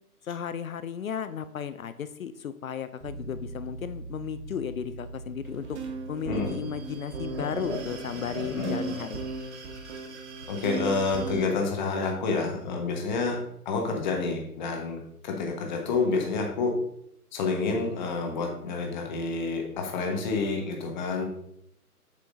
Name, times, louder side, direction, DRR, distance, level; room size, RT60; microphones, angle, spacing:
voice 1, 0.2-5.8 6.1-9.2, left 8 dB, 60° left, 12 dB, 0.5 m, -34 dB
sound 1, 3.0-12.7, right 3 dB, 65° right, 1.6 m, -45 dB
sound 2, 5.4-11.5, right 4 dB, 45° right, 1.3 m, -36 dB
voice 2, 10.5-13.4 13.6-16.7 17.3-21.2, left 4 dB, 30° left, 2 dB, 1.2 m, -28 dB
8.2 x 6.3 x 2.6 m, 0.74 s
figure-of-eight pair, 140°, 47 cm